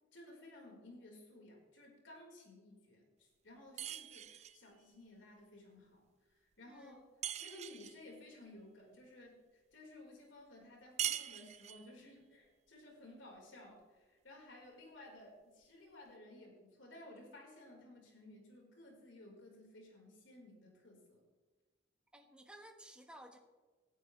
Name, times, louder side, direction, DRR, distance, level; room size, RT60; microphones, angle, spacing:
voice 1, 0.1-6.0 6.3-7.0 7.4-21.2, left 1 dB, 85° left, -1 dB, 4.8 m, -56 dB
sound 1, 3.8-4.6 7.2-8.0 11.0-11.9, right 11 dB, 35° right, 0.4 m, -41 dB
voice 2, 6.7-7.1 22.1-23.4, right 1 dB, 5° right, 3 dB, 1.4 m, -56 dB
19.0 x 12.5 x 3.4 m, 1.3 s
head